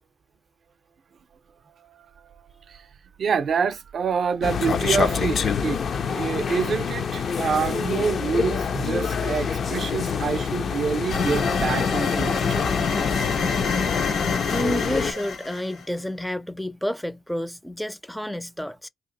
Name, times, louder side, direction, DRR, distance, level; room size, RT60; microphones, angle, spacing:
voice 1, 3.2-5.8 6.1-12.4, right 6 dB, 60° right, 0.5 m, -26 dB
sound 1, 4.4-15.1, left 6 dB, 60° left, 0.4 m, -26 dB
sound 2, 11.1-15.8, left 5 dB, 75° left, 1.0 m, -26 dB
voice 2, 14.5-18.9, equal, 5° left, 0.4 m, -30 dB
2.8 x 2.5 x 3.9 m
cardioid pair, 80°, 0 cm